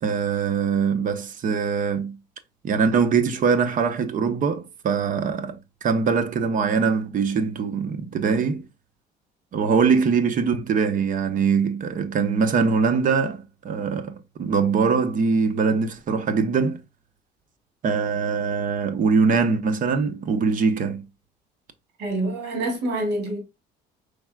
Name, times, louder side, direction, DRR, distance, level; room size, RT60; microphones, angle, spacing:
voice 1, 0.0-2.2 2.6-8.6 9.5-16.8 17.8-21.0, right 5 dB, 50° right, 0.9 m, -22 dB
voice 2, 22.0-23.4, right 1 dB, 80° right, 2.6 m, -26 dB
5.1 x 4.2 x 2.3 m
cardioid pair, 110°, 17 cm